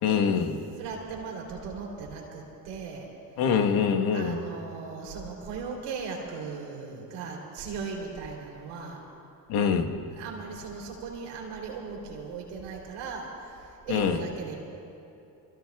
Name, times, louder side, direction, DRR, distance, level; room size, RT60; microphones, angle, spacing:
voice 1, 0.0-0.6 3.4-4.4 9.5-9.9 13.9-14.2, left 6 dB, 85° left, 4 dB, 1.4 m, -24 dB
voice 2, 0.8-3.1 4.1-9.0 10.0-14.5, right 5 dB, 85° right, -1 dB, 3.4 m, -38 dB
25.0 x 24.5 x 2.4 m, 2.8 s
supercardioid pair, 55°, 48 cm